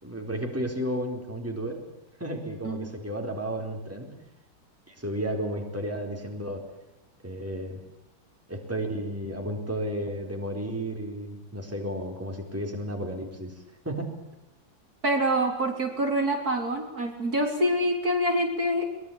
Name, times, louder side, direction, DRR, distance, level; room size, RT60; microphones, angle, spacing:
voice 1, 0.0-1.8 2.2-4.1 4.9-6.6 7.2-7.8 8.5-14.2, right 1 dB, 5° right, 2 dB, 4.2 m, -33 dB
voice 2, 15.0-18.9, right 1 dB, 45° right, 2 dB, 4.2 m, -26 dB
24.0 x 22.5 x 8.8 m, 0.90 s
omnidirectional pair, 2.1 m